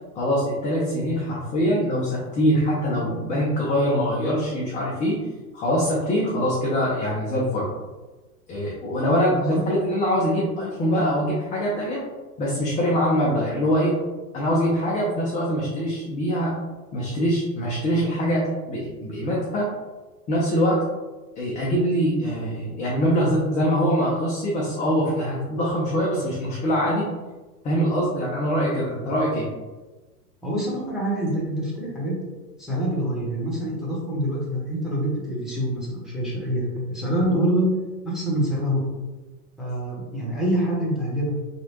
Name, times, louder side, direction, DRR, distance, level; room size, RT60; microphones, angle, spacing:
voice 1, 0.2-5.3 5.5-7.7 8.5-12.0 12.4-14.0 14.3-16.6 16.9-19.7 20.3-20.8 21.4-27.1 27.6-29.5, equal, 15° left, -5 dB, 0.5 m, -23 dB
voice 2, 30.4-32.1 32.6-37.7 38.0-39.0 39.6-41.3, right 1 dB, ahead, -6 dB, 1.0 m, -26 dB
2.9 x 2.4 x 2.8 m, 1.2 s
hypercardioid pair, 95°, 46 cm